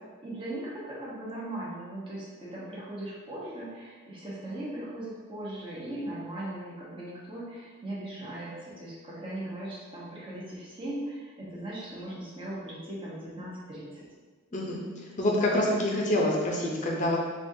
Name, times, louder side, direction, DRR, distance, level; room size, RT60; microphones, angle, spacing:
voice 1, 0.2-14.1, right 1 dB, 25° right, -8 dB, 1.0 m, -38 dB
voice 2, 15.2-17.2, left 1 dB, 35° left, -2 dB, 0.6 m, -26 dB
5.2 x 2.4 x 2.7 m, 1.4 s
head